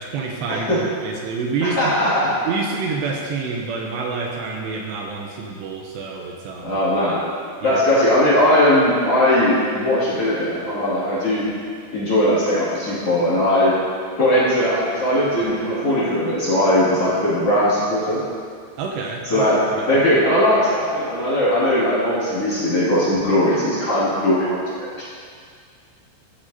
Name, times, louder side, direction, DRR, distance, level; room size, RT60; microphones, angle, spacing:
voice 1, 0.0-1.9 2.5-6.8 7.6-7.8 18.8-20.0, right 4 dB, 80° right, 1 dB, 2.7 m, -28 dB
voice 2, 1.6-2.3 6.6-7.2 7.6-11.5 11.9-13.7 14.2-18.2 19.3-19.6 19.9-25.0, left 1 dB, 40° left, -11 dB, 2.7 m, -19 dB
14.5 x 8.6 x 2.7 m, 2.2 s
omnidirectional pair, 5.2 m